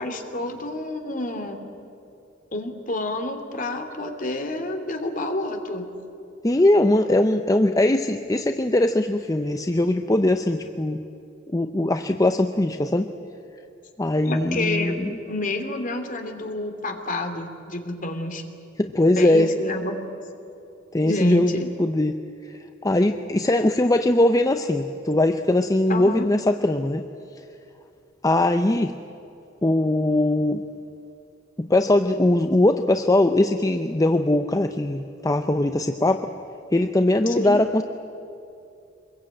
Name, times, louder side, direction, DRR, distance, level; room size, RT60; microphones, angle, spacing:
voice 1, 0.0-1.6 2.5-5.9 14.2-15.0 15.2-18.4 19.2-19.9 21.0-21.7 25.9-26.3 37.3-37.6, left 2 dB, 45° left, 5 dB, 2.8 m, -29 dB
voice 2, 6.4-11.0 11.5-13.1 14.0-15.1 18.8-19.5 20.9-22.2 22.4-27.0 28.2-28.9 29.6-30.6 31.6-36.3 36.7-37.8, left 1 dB, 20° left, 7 dB, 0.7 m, -21 dB
25.5 x 21.5 x 8.9 m, 2.7 s
head